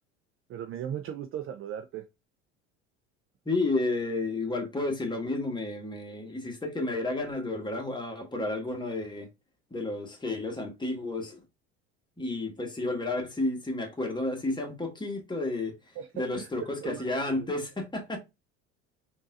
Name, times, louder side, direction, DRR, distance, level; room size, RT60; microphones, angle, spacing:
voice 1, 0.5-2.0 16.0-16.5 16.8-17.5, right 9 dB, 40° right, 0.4 m, -38 dB
voice 2, 3.4-9.3 9.7-11.4 12.2-15.7 16.1-18.2, left 2 dB, 10° left, 1.3 m, -31 dB
3.7 x 2.7 x 2.5 m
hypercardioid pair, 75°, 35 cm